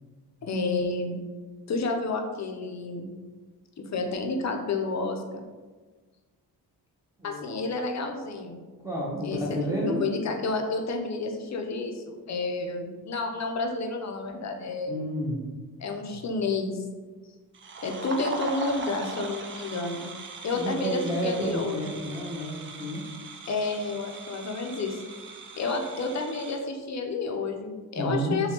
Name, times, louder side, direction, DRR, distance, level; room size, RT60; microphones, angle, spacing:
voice 1, 0.4-1.2 1.7-3.1 3.8-5.4 7.2-8.6 9.2-9.4 9.9-15.0 15.8-16.8 17.8-20.0 20.4-21.8 23.5-25.0 25.6-28.5, left 3 dB, 40° left, 3 dB, 0.6 m, -30 dB
voice 2, 8.8-10.0 14.8-15.4 20.5-23.0 28.0-28.4, right 1 dB, 10° right, -6 dB, 0.9 m, -30 dB
sound 1, 17.5-26.6, right 4 dB, 30° right, 0.4 m, -40 dB
3.3 x 2.3 x 2.8 m, 1.3 s
cardioid pair, 60°, 41 cm